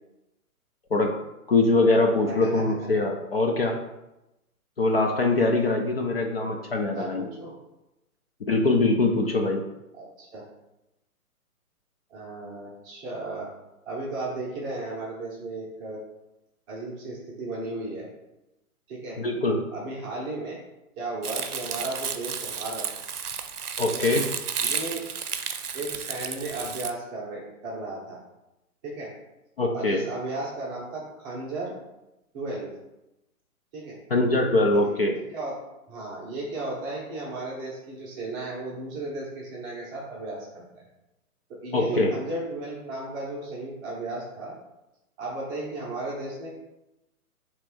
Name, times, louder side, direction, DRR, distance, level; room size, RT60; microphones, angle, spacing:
voice 1, 1.5-3.8 4.8-7.2 8.5-9.6 19.2-19.6 23.8-24.2 29.6-30.0 34.1-35.1 41.7-42.1, left 2 dB, 40° left, 1 dB, 0.5 m, -23 dB
voice 2, 2.3-2.6 6.9-7.5 9.9-10.4 12.1-13.5 13.8-16.0 16.7-18.1 18.9-19.2 19.7-20.6 21.0-22.9 23.8-24.1 24.6-25.0 25.7-28.2 28.8-29.1 29.7-31.8 32.3-32.8 33.7-34.0 34.7-34.9 35.3-35.5 35.9-40.8 41.6-44.5 45.2-46.5, right 2 dB, 15° right, -5 dB, 0.7 m, -35 dB
Crumpling crinkling, 21.2-26.9, right 7 dB, 80° right, 0.6 m, -32 dB
3.3 x 3.0 x 4.8 m, 0.94 s
figure-of-eight pair, 130°, 45 cm